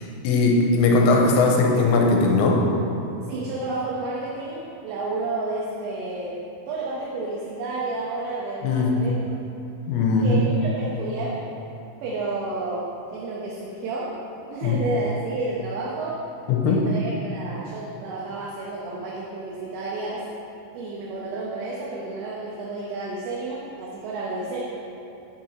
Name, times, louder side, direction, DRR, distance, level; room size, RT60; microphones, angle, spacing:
voice 1, 0.2-2.6 8.6-9.1 9.9-10.4 14.6-14.8 16.5-16.8, left 3 dB, 85° left, 0 dB, 3.2 m, -19 dB
voice 2, 3.2-9.4 10.2-11.4 12.0-14.1 14.5-16.2 16.6-20.3 20.7-24.6, right 2 dB, 75° right, -5 dB, 2.8 m, -31 dB
8.7 x 5.7 x 4.5 m, 2.8 s
omnidirectional pair, 5.9 m